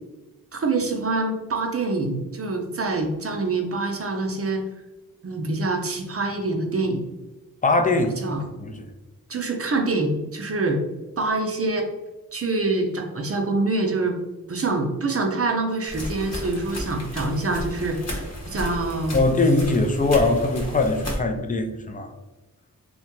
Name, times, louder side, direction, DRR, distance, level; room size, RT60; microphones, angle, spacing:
voice 1, 0.5-4.6 5.2-7.0 8.2-8.4 9.3-10.8 11.2-11.9 12.3-14.2 14.5-19.2, right 3 dB, 40° right, 3 dB, 0.5 m, -25 dB
voice 2, 7.6-8.2 8.6-8.9 19.1-22.1, left 2 dB, 25° left, 5 dB, 0.4 m, -21 dB
sound 1, 15.9-21.2, left 1 dB, 45° left, 0.9 m, -33 dB
2.8 x 2.2 x 2.9 m, 1.1 s
cardioid pair, 50°, 36 cm